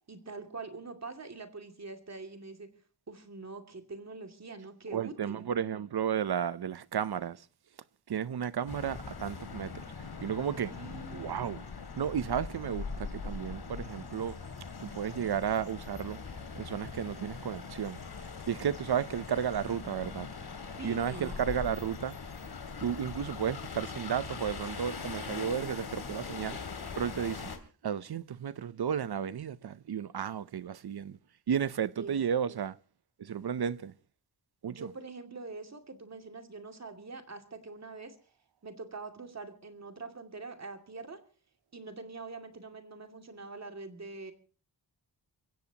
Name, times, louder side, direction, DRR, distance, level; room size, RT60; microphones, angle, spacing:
voice 1, 0.1-2.7 3.1-5.4 10.6-11.4 20.8-21.4 32.0-32.1 34.7-38.2 38.6-41.2 41.7-44.3, right 3 dB, 40° right, 2.5 m, -44 dB
voice 2, 4.9-7.4 8.1-9.7 10.2-10.7 11.1-11.6 12.0-14.4 14.8-16.2 16.5-18.0 18.5-20.3 20.8-22.2 22.8-26.6 27.0-27.5 27.8-31.2 31.5-32.8 33.2-33.9 34.6-34.9, right 8 dB, 65° right, 0.7 m, -33 dB
sound 1, 8.7-27.6, left 5 dB, 65° left, 2.9 m, -41 dB
28.5 x 15.5 x 2.9 m
wide cardioid pair, 170°, 42 cm